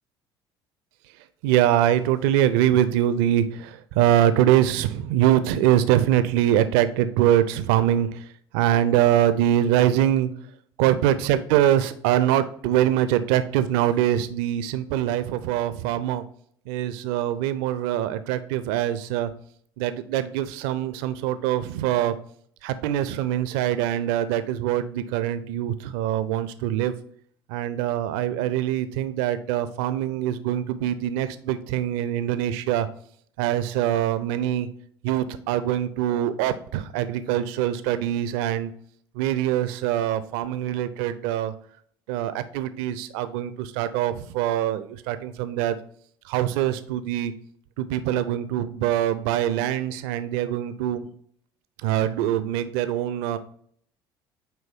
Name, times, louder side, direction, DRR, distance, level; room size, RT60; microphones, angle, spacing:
voice 1, 1.4-8.2 8.5-10.3 10.8-16.2 16.7-19.3 19.8-22.2 22.6-26.9 27.5-32.9 33.4-34.7 35.0-38.7 39.2-41.5 42.1-45.8 46.3-47.3 47.8-51.1 51.8-53.4, right 11 dB, 65° right, 12 dB, 0.4 m, -23 dB
9.0 x 3.1 x 3.5 m, 0.62 s
figure-of-eight pair, 60°, 13 cm